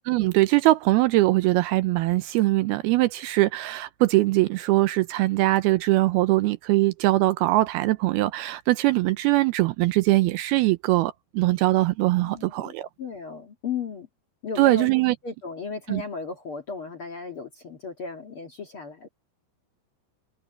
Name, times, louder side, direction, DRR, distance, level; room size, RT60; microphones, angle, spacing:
voice 1, 0.1-12.9 14.6-15.2 15.9-16.0, right 18 dB, 80° right, 2.4 m, -22 dB
voice 2, 12.2-14.1 14.4-14.9 15.2-19.1, left 5 dB, 50° left, 1.7 m, -35 dB
omnidirectional pair, 4.8 m